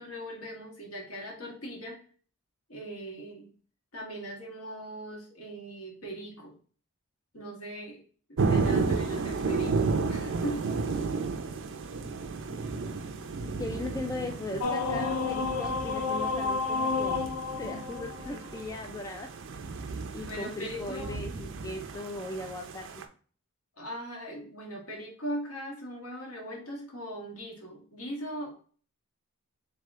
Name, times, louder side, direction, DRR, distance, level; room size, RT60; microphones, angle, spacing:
voice 1, 0.0-2.0 2.7-3.5 3.9-6.5 7.3-8.0 8.3-10.7 20.3-21.3 23.8-28.6, right 1 dB, 65° left, -1 dB, 1.6 m, -39 dB
sound 1, 8.4-23.0, right 4 dB, 60° right, 0.5 m, -33 dB
voice 2, 13.6-17.2 17.6-19.3 20.1-22.8, left 2 dB, 15° left, 3 dB, 0.3 m, -38 dB
sound 2, 14.6-18.8, left 4 dB, 85° left, 0.7 m, -31 dB
3.6 x 3.4 x 3.6 m, 0.43 s
head